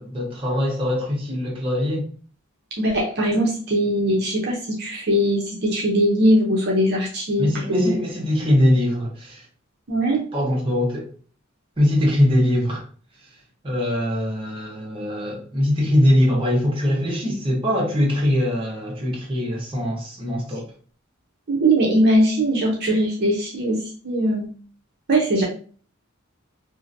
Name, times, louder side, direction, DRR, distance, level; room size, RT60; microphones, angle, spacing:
voice 1, 0.0-2.1 7.4-9.4 10.3-11.1 11.8-12.8 13.6-20.7, left 1 dB, 25° right, 0.9 m, -22 dB
voice 2, 2.8-8.0 9.9-10.2 21.5-23.8 24.0-24.5 25.1-25.4, right 1 dB, 50° right, 0.6 m, -20 dB
2.7 x 2.5 x 2.5 m
head